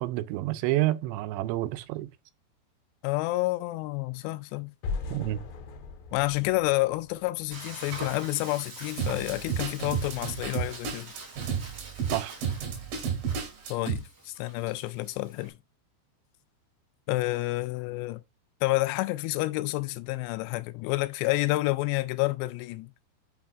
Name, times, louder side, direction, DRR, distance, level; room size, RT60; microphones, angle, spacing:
voice 1, 0.0-2.1 5.1-5.4 12.1-12.4, right 16 dB, 85° right, 2.8 m, -29 dB
voice 2, 3.0-4.7 6.1-11.1 13.7-15.6 17.1-18.2 18.6-22.9, left 19 dB, 85° left, 2.7 m, -29 dB
sound 1, 4.8-7.8, left 4 dB, 70° left, 2.4 m, -38 dB
Frying (food), 7.5-15.5, right 3 dB, 35° right, 3.6 m, -45 dB
sound 2, 9.0-14.0, right 7 dB, 60° right, 4.1 m, -32 dB
9.3 x 5.6 x 2.3 m
omnidirectional pair, 5.0 m